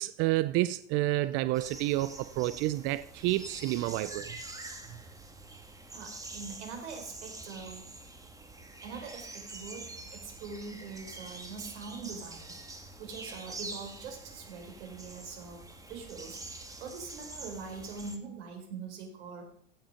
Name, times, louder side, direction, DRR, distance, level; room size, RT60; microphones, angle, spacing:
voice 1, 0.0-4.3, right 16 dB, 35° right, 0.4 m, -29 dB
sound 1, 1.5-18.2, right 2 dB, 10° right, 1.5 m, -46 dB
voice 2, 5.9-7.9 8.8-19.4, right 5 dB, 65° right, 4.2 m, -43 dB
16.0 x 6.2 x 5.7 m
hypercardioid pair, 105°, 38 cm